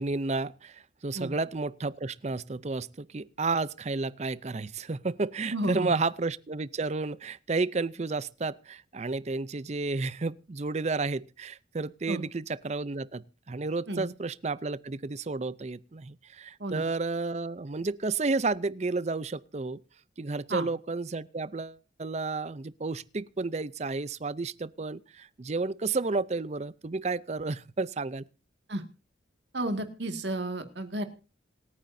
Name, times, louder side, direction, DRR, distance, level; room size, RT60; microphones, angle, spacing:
voice 1, 0.0-19.8 20.2-28.2, right 3 dB, 35° right, 0.5 m, -32 dB
voice 2, 5.5-5.9 12.1-12.2 13.9-14.0 16.6-16.8 20.5-20.7 28.7-28.8 29.5-31.1, right 1 dB, 70° right, 2.0 m, -32 dB
27.0 x 9.3 x 2.7 m
head